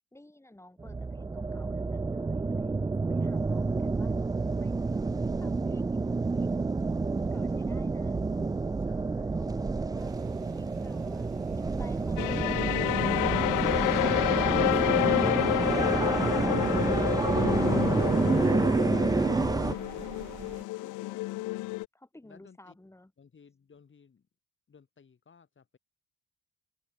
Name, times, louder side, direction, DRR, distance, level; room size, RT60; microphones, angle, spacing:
voice 1, 0.1-2.8 3.1-4.1 4.5-8.7 9.4-10.1 10.5-14.2 19.6-20.1 21.9-23.1, left 1 dB, 10° left, 6.2 m, -53 dB
sound 1, 0.8-19.7, right 3 dB, 15° right, 0.4 m, -28 dB
voice 2, 8.3-10.1 22.2-22.8 23.2-24.3 24.7-25.8, left 6 dB, 40° left, 5.3 m, -59 dB
sound 2, 10.0-20.6, right 11 dB, 70° right, 4.3 m, -47 dB
sound 3, 12.2-21.9, left 20 dB, 85° left, 0.5 m, -29 dB
cardioid pair, 90°, 30 cm